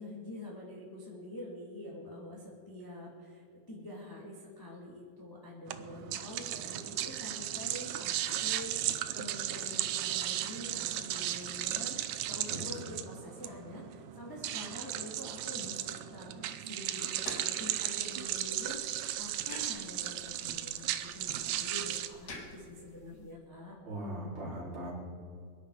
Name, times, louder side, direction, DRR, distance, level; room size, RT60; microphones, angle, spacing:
voice 1, 0.0-12.0 12.3-23.8, left 1 dB, 5° left, -4 dB, 1.8 m, -46 dB
sound 1, 5.7-22.1, right 12 dB, 90° right, 1.6 m, -36 dB
sound 2, 16.9-23.3, left 3 dB, 40° left, 1.9 m, -51 dB
voice 2, 23.8-24.9, right 1 dB, 35° right, -6 dB, 5.2 m, -39 dB
23.0 x 11.0 x 5.0 m, 2.2 s
omnidirectional pair, 4.1 m